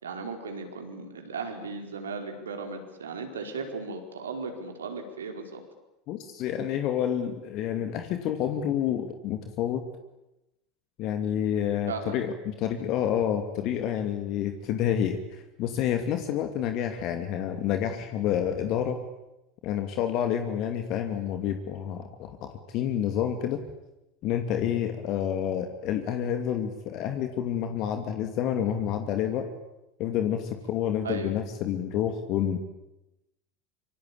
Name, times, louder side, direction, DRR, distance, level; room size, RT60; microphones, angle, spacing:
voice 1, 0.0-5.6 11.9-12.2 31.0-31.3, right 4 dB, 75° right, 5 dB, 4.7 m, -36 dB
voice 2, 6.1-9.8 11.0-19.0 19.6-23.6 24.2-29.5 30.0-32.6, left 9 dB, 45° left, 7 dB, 2.6 m, -29 dB
26.0 x 25.5 x 8.8 m, 0.94 s
figure-of-eight pair, 75°, 0 cm